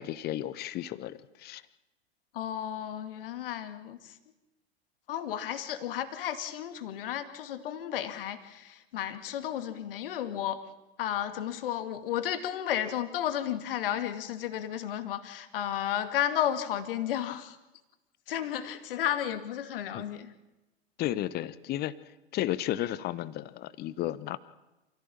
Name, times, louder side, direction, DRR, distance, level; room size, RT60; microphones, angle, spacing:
voice 1, 0.0-1.6 19.9-20.0 21.0-22.0 22.3-24.4, left 13 dB, 30° left, 17 dB, 1.1 m, -33 dB
voice 2, 2.3-4.2 5.1-10.6 11.0-17.6 18.3-20.3, left 11 dB, 55° left, 10 dB, 2.4 m, -33 dB
28.0 x 16.0 x 8.9 m, 1.0 s
figure-of-eight pair, 95°, 33 cm